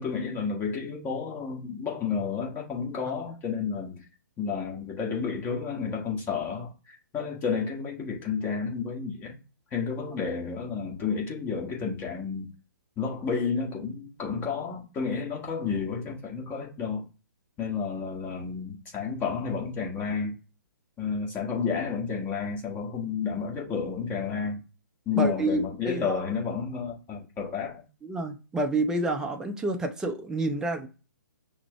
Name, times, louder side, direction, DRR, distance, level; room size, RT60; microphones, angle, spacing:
voice 1, 0.0-4.0 4.4-9.4 9.7-12.5 13.0-17.0 17.6-20.3 21.0-24.6 25.1-27.8, left 5 dB, 15° left, 1.2 m, -31 dB
voice 2, 25.2-26.2 28.0-30.9, right 2 dB, 5° right, 0.5 m, -28 dB
5.9 x 2.0 x 3.3 m
figure-of-eight pair, 135°, 11 cm